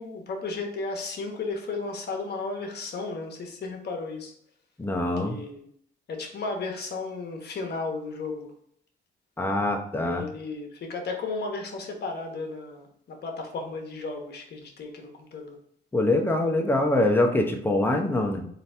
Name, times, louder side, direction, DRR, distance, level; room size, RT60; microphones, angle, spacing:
voice 1, 0.0-4.3 5.2-5.7 6.1-8.5 9.9-15.6, left 3 dB, 55° left, 3 dB, 1.0 m, -34 dB
voice 2, 4.8-5.4 9.4-10.2 15.9-18.5, left 1 dB, 10° left, 1 dB, 0.8 m, -24 dB
3.9 x 2.8 x 3.3 m, 0.66 s
cardioid pair, 90°, 20 cm